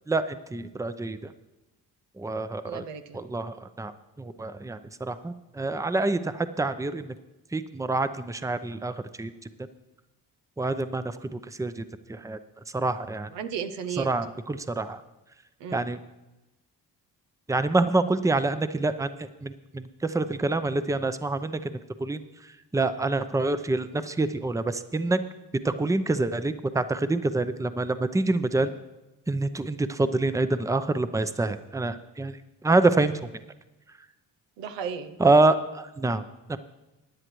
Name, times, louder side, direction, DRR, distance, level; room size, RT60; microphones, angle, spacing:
voice 1, 0.1-1.3 2.2-2.8 3.1-3.9 4.2-7.1 7.5-9.3 10.6-12.4 12.7-13.3 14.0-15.0 15.7-16.0 17.5-21.7 22.0-22.2 22.7-25.2 25.6-28.7 29.3-32.4 32.6-33.2 35.2-36.2 36.5-36.6, right 2 dB, 10° right, 11 dB, 0.6 m, -26 dB
voice 2, 2.7-3.2 13.3-14.1 15.6-15.8 34.6-35.2, right 7 dB, 90° right, 9 dB, 0.7 m, -34 dB
15.5 x 10.0 x 3.1 m, 1.0 s
supercardioid pair, 50°, 42 cm